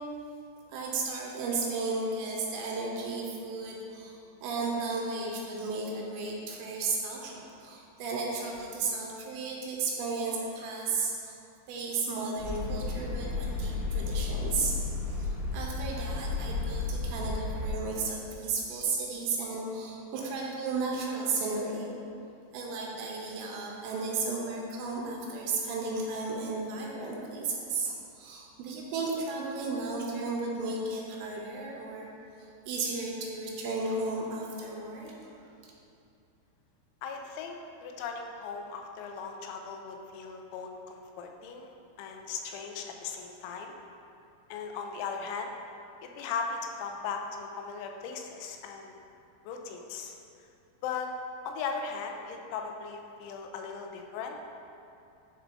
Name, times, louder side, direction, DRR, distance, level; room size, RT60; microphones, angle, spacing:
voice 1, 0.7-11.4 11.7-21.9 22.5-32.1 32.4-35.5, right 3 dB, 85° right, -2 dB, 2.9 m, -34 dB
sound 1, 12.4-17.7, left 3 dB, 70° left, 2.5 m, -33 dB
voice 2, 37.0-43.7 44.5-45.5 46.0-48.9 49.5-50.2 50.8-51.1 51.5-54.4, left 5 dB, 85° left, 3 dB, 3.0 m, -38 dB
11.0 x 4.4 x 2.6 m, 2.6 s
omnidirectional pair, 5.4 m